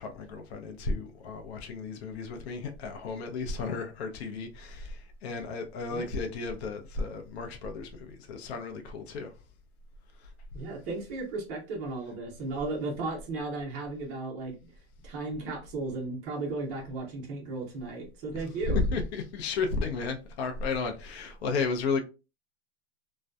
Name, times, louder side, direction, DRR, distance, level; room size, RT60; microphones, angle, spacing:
voice 1, 0.0-9.3 10.2-10.3 18.7-22.0, left 4 dB, 65° left, 0.6 m, -33 dB
voice 2, 10.5-14.6 15.0-18.8, right 3 dB, 20° right, 0.5 m, -35 dB
2.6 x 2.2 x 2.2 m
supercardioid pair, 165°, 34 cm